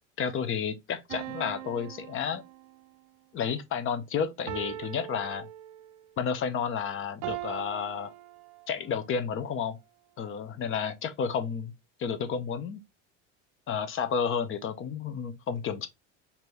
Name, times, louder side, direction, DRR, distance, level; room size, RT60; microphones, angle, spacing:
voice 1, 0.2-2.4 3.3-5.5 6.2-8.1 8.7-9.8 10.2-11.7 12.0-12.8 13.7-15.9, left 7 dB, 35° left, 0.8 m, -31 dB
sound 1, 1.1-3.0 4.5-6.1 7.2-8.9, right 14 dB, 60° right, 0.5 m, -41 dB
4.3 x 2.8 x 3.2 m
cardioid pair, 130°, 36 cm